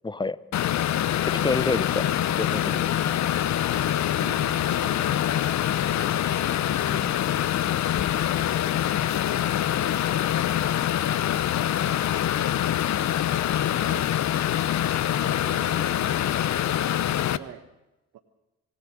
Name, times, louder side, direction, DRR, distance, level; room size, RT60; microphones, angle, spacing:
voice 1, 0.0-0.4 1.2-2.1 2.4-2.8 6.9-7.1, left 3 dB, 15° left, 17 dB, 0.9 m, -28 dB
sound 1, 0.5-17.4, left 11 dB, 55° left, 0.8 m, -25 dB
voice 2, 0.6-1.0 4.1-7.2 8.3-9.3 13.7-14.2 15.1-16.6 17.3-17.6 18.1-18.2, right 11 dB, 70° right, 4 dB, 1.3 m, -49 dB
25.5 x 17.5 x 6.4 m, 0.99 s
hypercardioid pair, 45°, 33 cm